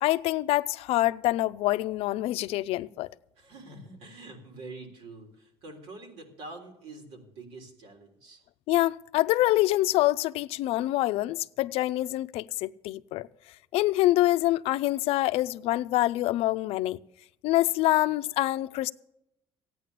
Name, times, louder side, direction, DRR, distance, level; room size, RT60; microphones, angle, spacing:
voice 1, 0.0-3.1 8.7-13.3 13.7-17.0 17.4-18.9, left 16 dB, 80° left, 0.5 m, -26 dB
voice 2, 3.4-8.4, right 2 dB, 85° right, 3.6 m, -46 dB
15.0 x 9.3 x 6.7 m
cardioid pair, 150°, 10 cm